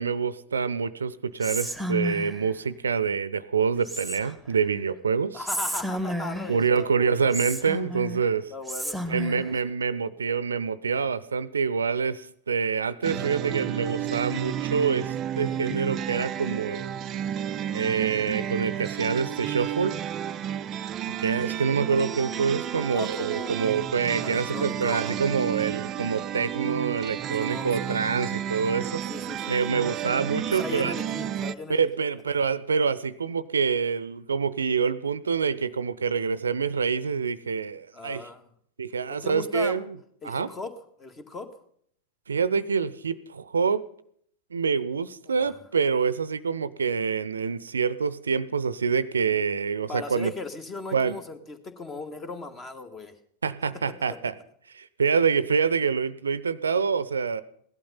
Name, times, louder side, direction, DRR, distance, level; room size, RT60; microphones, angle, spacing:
voice 1, 0.0-5.4 6.5-8.5 9.1-17.0 17.7-20.0 21.2-29.0 29.5-30.9 31.7-38.2 38.8-40.0 40.2-40.5 42.3-43.8 44.5-50.3 50.9-51.2 53.4-54.3 54.7-57.4, right 5 dB, 70° right, 17 dB, 0.7 m, -26 dB
Whispering, 1.4-2.5 3.8-4.5 5.4-6.6 7.3-8.2 8.7-9.5, equal, 5° left, 1.8 m, -32 dB
voice 2, 5.3-7.3 8.5-9.5 17.5-17.7 22.8-25.2 27.4-28.0 29.1-29.7 30.5-31.8 32.3-32.4 37.9-38.4 39.2-39.8 40.2-40.7 41.0-41.5 45.3-45.6 49.9-53.2 54.1-54.2, left 3 dB, 25° left, 9 dB, 1.9 m, -38 dB
sound 1, 13.0-31.5, right 10 dB, 30° right, 0.5 m, -32 dB
17.0 x 12.0 x 5.7 m, 0.64 s
figure-of-eight pair, 90°, 0 cm